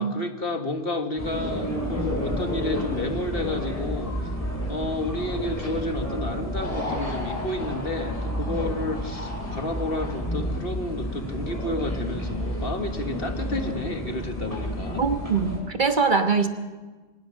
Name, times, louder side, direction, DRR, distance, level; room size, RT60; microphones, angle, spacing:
voice 1, 0.0-4.3 4.7-15.0, left 1 dB, 55° left, 5 dB, 1.8 m, -31 dB
sound 1, 1.2-15.6, equal, 30° left, 6.0 m, -30 dB
voice 2, 15.0-16.5, right 5 dB, 45° right, 6 dB, 1.4 m, -22 dB
24.0 x 19.0 x 6.4 m, 1.3 s
omnidirectional pair, 1.2 m